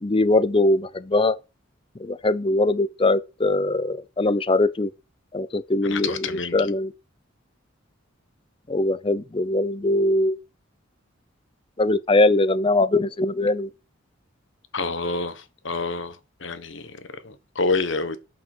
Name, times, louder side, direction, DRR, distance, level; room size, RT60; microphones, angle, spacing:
voice 1, 0.0-1.4 2.0-4.9 5.3-6.9 8.7-10.4 11.8-13.7, left 2 dB, 25° left, 0.6 m, -21 dB
voice 2, 5.8-6.7 14.7-18.2, left 3 dB, 65° left, 1.4 m, -28 dB
12.0 x 5.7 x 6.2 m
head